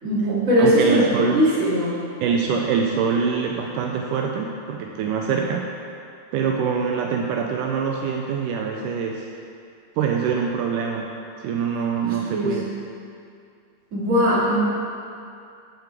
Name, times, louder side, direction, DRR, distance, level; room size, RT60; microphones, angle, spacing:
voice 1, 0.0-1.1 1.3-2.0 12.0-12.7 13.9-14.6, equal, 25° right, -9 dB, 2.4 m, -20 dB
voice 2, 0.6-1.5 2.2-5.7 6.3-9.3 10.0-11.2 11.4-12.7, right 6 dB, 80° right, 1 dB, 2.0 m, -24 dB
12.5 x 7.8 x 3.5 m, 2.4 s
omnidirectional pair, 3.8 m